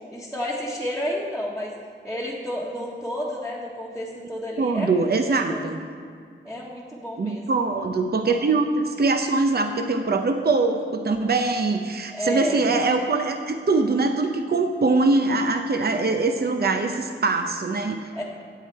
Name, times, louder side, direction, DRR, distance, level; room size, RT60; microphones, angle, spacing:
voice 1, 0.1-1.7 2.0-5.6 6.4-7.6 12.1-12.7 18.1-18.2, equal, ahead, -7 dB, 1.4 m, -31 dB
voice 2, 4.6-5.8 7.2-18.2, right 3 dB, 50° right, 6 dB, 0.7 m, -23 dB
11.5 x 8.5 x 4.6 m, 2.2 s
wide cardioid pair, 80°, 21 cm